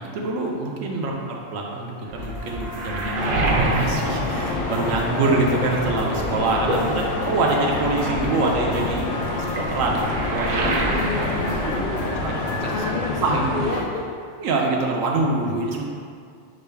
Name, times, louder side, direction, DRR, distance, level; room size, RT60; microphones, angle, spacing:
voice 1, 0.0-10.8 11.2-11.3 12.0-12.7 13.2-13.5 14.4-15.9, right 3 dB, 85° right, 0 dB, 1.0 m, -25 dB
Waves surf, 2.1-5.3 5.6-12.5 12.8-13.7, right 2 dB, 60° right, 0.6 m, -29 dB
sound 1, 2.2-12.9, left 2 dB, 55° left, 1.0 m, -33 dB
sound 2, 3.2-13.8, left 3 dB, 90° left, 1.0 m, -28 dB
voice 2, 6.7-7.0 8.1-9.2 10.6-12.3 12.7-14.0, left 3 dB, 75° left, -4 dB, 0.4 m, -31 dB
6.3 x 2.2 x 3.3 m, 2.2 s
omnidirectional pair, 1.3 m